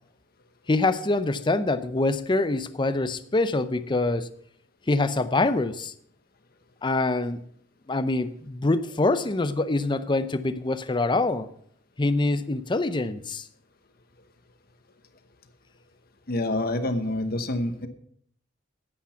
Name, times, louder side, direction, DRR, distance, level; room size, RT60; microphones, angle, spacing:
voice 1, 0.7-4.3 4.9-5.9 6.8-7.4 7.9-11.5 12.0-13.5, left 2 dB, 25° left, 12 dB, 0.6 m, -25 dB
voice 2, 16.3-17.9, left 1 dB, 55° left, 8 dB, 1.1 m, -27 dB
10.0 x 8.6 x 5.8 m, 0.64 s
head